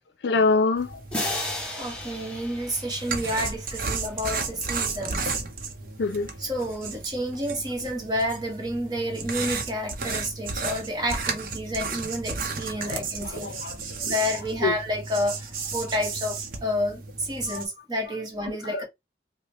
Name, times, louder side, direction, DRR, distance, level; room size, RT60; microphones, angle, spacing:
voice 1, 0.2-1.0 6.0-6.3 12.8-14.1 14.6-14.8 17.5-17.6 18.1-18.8, left 3 dB, 75° left, 0.5 m, -27 dB
sound 1, 0.8-17.6, right 4 dB, 50° right, 0.7 m, -34 dB
sound 2, 1.1-3.9, left 1 dB, 5° left, 0.9 m, -34 dB
voice 2, 1.8-5.3 6.4-13.5 14.0-18.8, equal, 25° right, 1.1 m, -30 dB
4.9 x 2.1 x 2.8 m
head